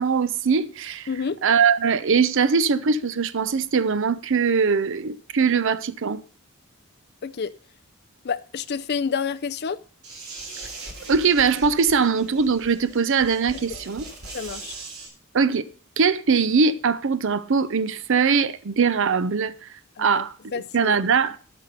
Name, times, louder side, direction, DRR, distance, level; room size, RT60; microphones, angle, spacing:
voice 1, 0.0-1.1 1.4-6.2 11.1-14.0 15.3-15.6 16.0-19.5 20.0-20.3 20.7-21.4, right 5 dB, 60° right, 0.6 m, -21 dB
voice 2, 1.1-1.4 7.2-7.5 8.2-9.8 14.3-14.7 20.0-20.2 20.5-21.0, left 6 dB, 50° left, 0.5 m, -29 dB
sound 1, 10.0-15.1, right 3 dB, 80° right, 3.4 m, -40 dB
12.5 x 5.7 x 5.2 m
head